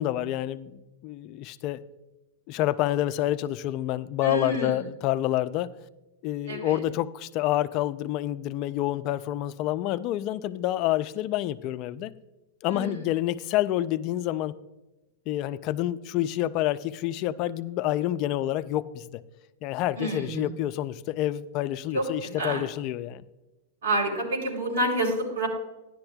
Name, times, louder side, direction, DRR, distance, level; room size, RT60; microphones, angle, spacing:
voice 1, 0.0-1.8 2.5-5.7 6.2-12.1 12.6-14.6 15.3-19.2 19.6-23.2, left 14 dB, 30° left, 13 dB, 0.3 m, -28 dB
voice 2, 4.2-4.8 6.5-6.8 12.6-13.0 20.0-20.5 21.9-22.6 23.8-25.5, right 1 dB, 80° right, -1 dB, 3.2 m, -28 dB
13.0 x 10.5 x 2.3 m, 1.0 s
supercardioid pair, 170°, 0 cm